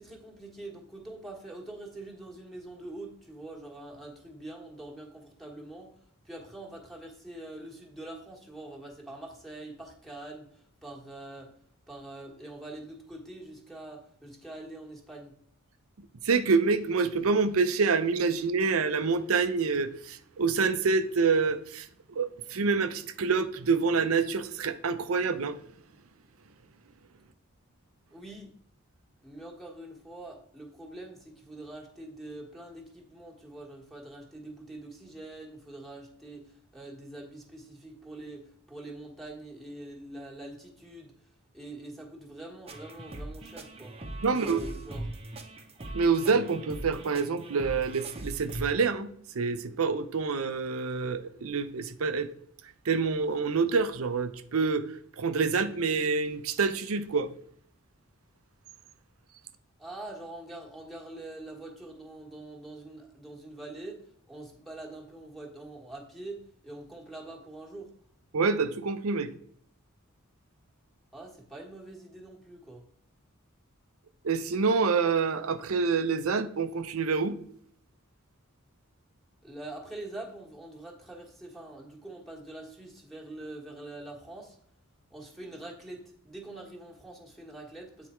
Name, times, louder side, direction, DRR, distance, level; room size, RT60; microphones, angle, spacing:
voice 1, 0.0-6.0 6.2-11.5 11.9-15.3 28.1-28.5 29.2-41.1 41.5-45.1 59.8-64.0 64.3-67.9 71.1-72.8 79.4-84.6 85.1-88.1, right 2 dB, ahead, 1.5 m, -44 dB
voice 2, 16.2-25.6 44.2-44.6 45.9-49.1 49.3-52.3 52.9-54.9 55.2-57.3 68.3-69.3 74.2-77.4, right 4 dB, 80° right, 0.6 m, -27 dB
sound 1, 42.7-48.7, right 2 dB, 30° right, 0.9 m, -41 dB
8.5 x 4.1 x 4.4 m
head